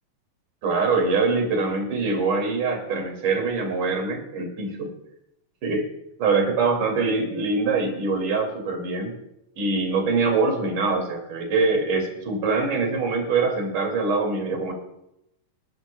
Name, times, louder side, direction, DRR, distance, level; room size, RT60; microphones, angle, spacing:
voice 1, 0.6-4.9 5.6-5.8 6.2-9.1 9.6-14.7, right 4 dB, 65° right, 2 dB, 3.8 m, -24 dB
27.0 x 12.0 x 2.2 m, 0.83 s
omnidirectional pair, 3.9 m